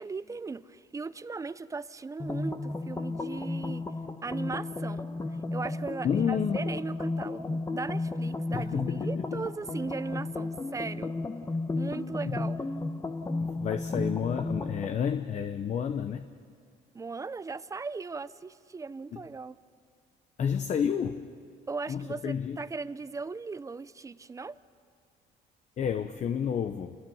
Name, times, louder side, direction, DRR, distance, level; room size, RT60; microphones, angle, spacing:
voice 1, 0.0-3.9 4.2-5.1 5.5-11.2 11.8-12.6 16.9-19.5 21.7-24.6, right 4 dB, 20° right, 16 dB, 0.6 m, -38 dB
sound 1, 2.2-14.9, left 2 dB, 20° left, 1.2 m, -33 dB
voice 2, 6.0-6.6 8.5-9.4 12.3-12.4 13.5-16.3 19.1-19.2 20.4-21.2 21.9-22.6 25.8-27.0, left 8 dB, 45° left, 9 dB, 0.8 m, -30 dB
28.5 x 21.5 x 5.6 m, 2.3 s
cardioid pair, 110°, 17 cm